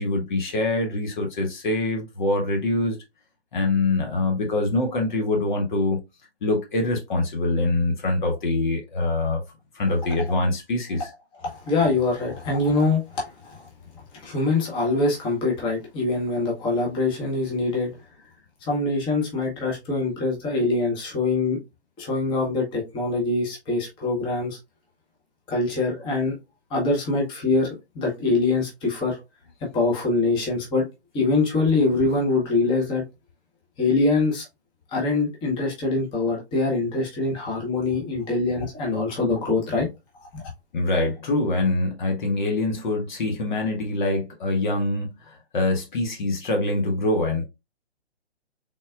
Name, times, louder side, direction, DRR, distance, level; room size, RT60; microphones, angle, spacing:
voice 1, 0.0-3.0 3.5-6.0 6.4-9.4 9.7-11.1 40.7-47.4, left 2 dB, 45° left, 1.1 m, -24 dB
voice 2, 11.4-13.7 14.2-17.9 18.6-21.6 22.0-24.6 25.5-26.4 26.7-29.2 29.7-30.9 31.1-33.0 33.8-34.5 34.9-39.9 40.3-40.4, left 3 dB, 15° left, 1.1 m, -24 dB
3.8 x 3.8 x 2.3 m
figure-of-eight pair, 130°, 34 cm